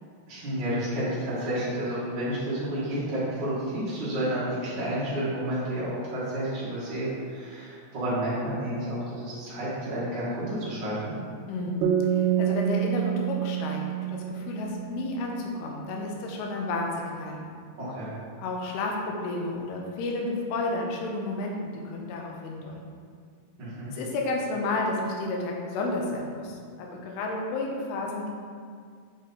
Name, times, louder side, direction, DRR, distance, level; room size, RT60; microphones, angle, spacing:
voice 1, 0.3-11.1 17.7-18.2 23.6-23.9, right 1 dB, 70° right, -11 dB, 1.0 m, -30 dB
voice 2, 11.5-17.5 18.4-23.0 23.9-28.3, left 2 dB, 80° left, 0 dB, 2.7 m, -31 dB
sound 1, 11.8-15.3, right 11 dB, 85° right, 2.6 m, -27 dB
6.8 x 4.2 x 3.7 m, 2.1 s
omnidirectional pair, 4.7 m